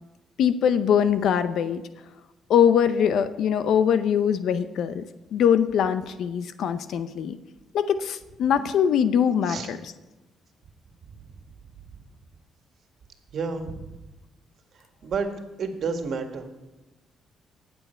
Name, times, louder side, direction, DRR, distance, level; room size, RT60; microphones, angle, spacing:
voice 1, 0.4-1.8 2.5-5.0 5.3-7.4 7.7-9.8, left 8 dB, 75° left, 12 dB, 0.6 m, -22 dB
voice 2, 13.3-13.9 15.0-15.3 15.6-16.5, right 5 dB, 60° right, 5 dB, 1.7 m, -30 dB
19.5 x 7.1 x 4.5 m, 1.1 s
cardioid pair, 90°, 0 cm